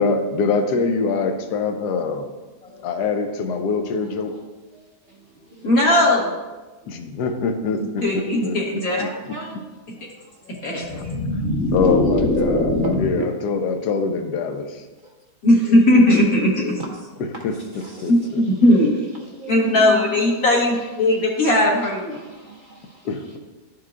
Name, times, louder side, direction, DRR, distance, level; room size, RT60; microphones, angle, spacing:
voice 1, 0.0-2.3 2.8-4.4 6.9-8.6 9.0-9.1 10.9-11.0 11.7-14.8 17.4-17.5 18.0-18.4 23.0-23.4, left 4 dB, 80° left, 6 dB, 1.2 m, -24 dB
voice 2, 2.6-2.9 5.6-6.3 8.0-9.0 10.5-11.1 11.7-11.8 15.4-16.8 18.1-19.1 19.5-22.2, left 1 dB, 60° left, -3 dB, 1.8 m, -18 dB
voice 3, 4.0-5.2 5.5-5.9 8.0-8.4 8.8-9.7 11.5-11.6 12.8-13.3 15.0-15.2 16.9-18.6 19.1-19.9 20.3-21.5 21.8-23.4, right 3 dB, 75° right, -1 dB, 0.4 m, -39 dB
sound 1, 10.8-13.3, left 1 dB, 10° left, 0.5 m, -22 dB
12.0 x 4.6 x 2.5 m, 1.2 s
omnidirectional pair, 1.7 m